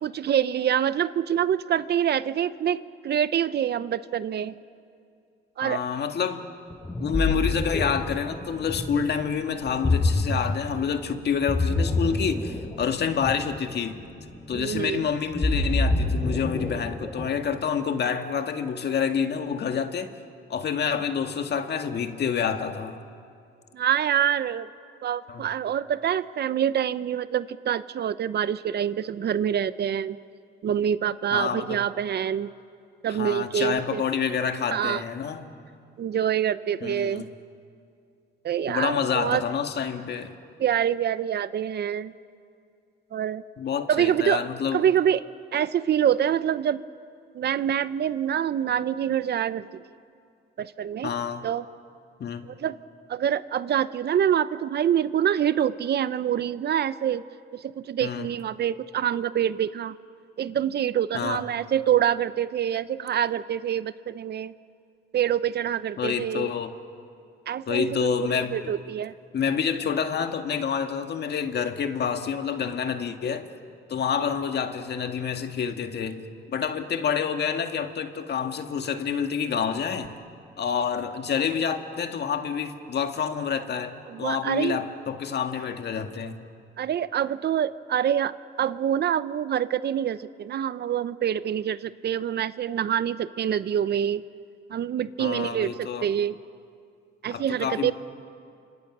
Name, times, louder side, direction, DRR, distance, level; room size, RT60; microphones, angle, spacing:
voice 1, 0.0-4.6 5.6-5.8 14.5-15.1 23.7-24.7 25.0-30.2 30.6-32.5 33.0-34.0 34.7-35.0 36.0-37.3 38.4-39.4 40.6-42.1 43.1-43.4 43.9-44.4 44.7-45.2 45.5-46.9 47.3-49.7 50.6-51.1 51.4-51.7 52.5-52.8 53.1-57.2 57.5-60.0 60.4-64.5 65.1-66.5 67.5-69.1 84.1-84.8 86.8-94.2 94.7-96.4 97.2-97.9, right 9 dB, 55° right, 15 dB, 0.7 m, -26 dB
voice 2, 5.6-6.5 7.0-14.0 14.5-20.1 20.5-23.0 25.3-25.5 31.3-31.8 33.1-35.5 36.8-37.3 38.7-40.3 43.6-44.8 51.0-51.5 52.2-52.5 58.0-58.3 61.1-61.4 66.0-66.7 67.7-68.6 69.3-73.5 73.9-76.2 76.5-80.2 80.6-86.4 95.2-96.1 97.3-97.9, left 7 dB, 55° left, 6 dB, 1.8 m, -28 dB
Ocean, 6.7-17.5, left 2 dB, 20° left, 6.7 m, -27 dB
29.5 x 26.5 x 6.1 m, 2.4 s
cardioid pair, 90°, 20 cm